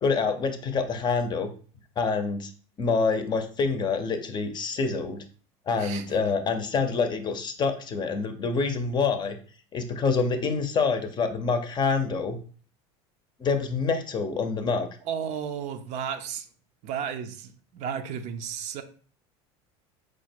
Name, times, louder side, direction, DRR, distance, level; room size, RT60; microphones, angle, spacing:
voice 1, 0.0-1.5 2.0-2.5 2.8-5.2 5.7-9.4 9.7-12.4 13.4-14.9, left 4 dB, 30° left, 7 dB, 0.6 m, -26 dB
voice 2, 15.0-16.5 16.8-18.8, right 8 dB, 55° right, 8 dB, 0.6 m, -33 dB
4.7 x 2.2 x 4.3 m, 0.42 s
supercardioid pair, 110°, 14 cm